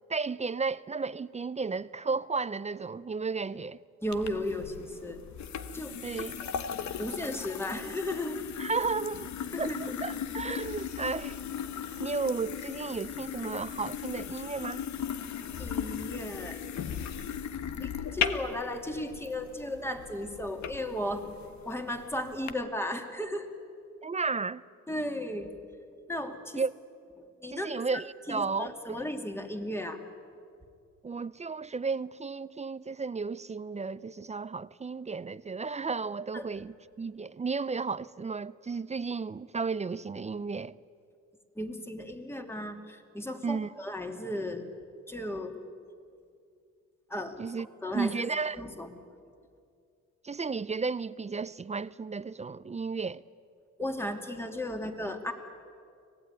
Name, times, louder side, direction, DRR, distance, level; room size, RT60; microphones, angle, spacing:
voice 1, 0.1-3.8 6.0-6.3 8.6-9.3 9.6-11.4 12.0-14.8 24.0-24.6 26.6-26.7 27.5-29.1 31.0-40.8 43.4-43.7 47.4-47.7 47.9-48.6 50.2-53.2, right 4 dB, 25° right, 0.5 m, -33 dB
voice 2, 4.0-5.2 5.7-6.2 6.8-8.4 9.5-10.0 15.6-17.0 17.8-21.2 21.6-23.5 24.9-25.5 26.1-26.6 27.2-28.0 28.3-30.0 36.3-36.5 41.6-44.7 45.1-45.6 47.1-47.4 47.8-48.1 48.5-48.9 53.8-55.3, left 1 dB, 10° left, 2.6 m, -35 dB
sound 1, 4.1-22.5, left 8 dB, 65° left, 1.3 m, -37 dB
25.0 x 18.0 x 9.6 m
cardioid pair, 90°, 30 cm